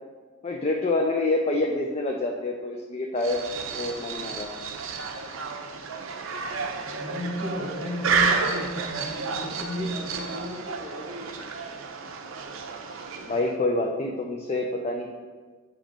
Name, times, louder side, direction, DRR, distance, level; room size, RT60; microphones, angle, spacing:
voice 1, 0.4-3.4 3.7-4.5 13.2-15.1, left 2 dB, 30° left, 1 dB, 0.4 m, -27 dB
sound 1, 3.2-13.6, right 5 dB, 75° right, 0.6 m, -31 dB
voice 2, 6.9-11.5, equal, 5° left, -10 dB, 1.0 m, -34 dB
7.4 x 3.0 x 5.1 m, 1.5 s
head